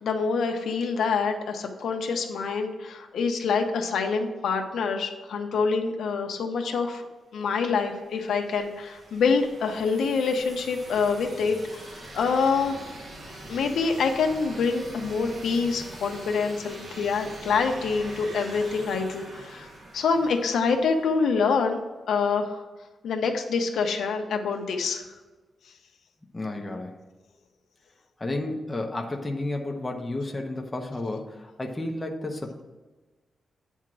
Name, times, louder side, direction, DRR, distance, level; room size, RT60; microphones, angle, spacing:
voice 1, 0.0-7.1 7.3-12.8 13.5-21.8 22.1-22.6 23.0-25.1, left 5 dB, 85° left, 4 dB, 0.9 m, -26 dB
sound 1, 7.6-21.3, right 1 dB, 40° right, 1.4 m, -43 dB
voice 2, 26.3-26.9 28.2-32.6, left 2 dB, 15° left, 1 dB, 0.8 m, -32 dB
9.0 x 3.6 x 6.1 m, 1.3 s
wide cardioid pair, 160°, 0 cm